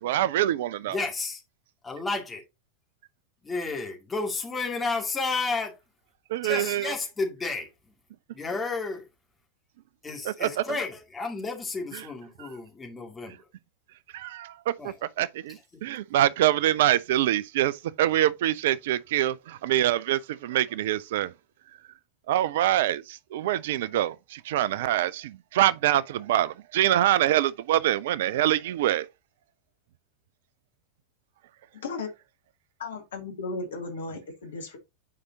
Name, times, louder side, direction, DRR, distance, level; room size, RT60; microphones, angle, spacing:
voice 1, 0.0-1.0 6.3-6.9 10.4-10.5 12.4-12.5 14.1-21.3 22.3-29.1, right 13 dB, 55° right, 0.4 m, -25 dB
voice 2, 0.9-1.4 1.8-2.4 3.4-5.7 6.4-7.7 8.3-9.1 10.0-13.5 14.8-14.9 15.5-15.9, left 3 dB, 15° left, 2.3 m, -32 dB
voice 3, 32.8-34.8, left 3 dB, 60° left, 1.8 m, -35 dB
9.5 x 4.8 x 2.8 m
figure-of-eight pair, 90°, 0 cm